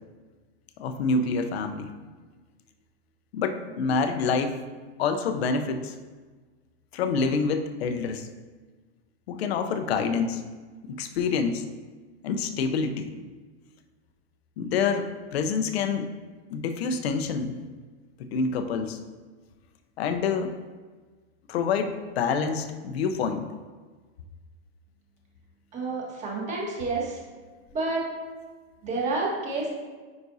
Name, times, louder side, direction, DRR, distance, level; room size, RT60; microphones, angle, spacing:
voice 1, 0.8-1.9 3.3-4.5 5.0-5.9 6.9-8.3 9.3-10.4 10.8-11.6 12.2-13.1 14.6-16.1 16.5-17.6 18.2-19.0 20.0-20.5 21.5-23.4, left 5 dB, 70° left, 7 dB, 0.8 m, -27 dB
voice 2, 25.7-27.2 27.7-28.0 28.8-29.7, right 3 dB, 20° right, -3 dB, 1.6 m, -29 dB
9.5 x 5.2 x 2.7 m, 1.4 s
supercardioid pair, 155°, 32 cm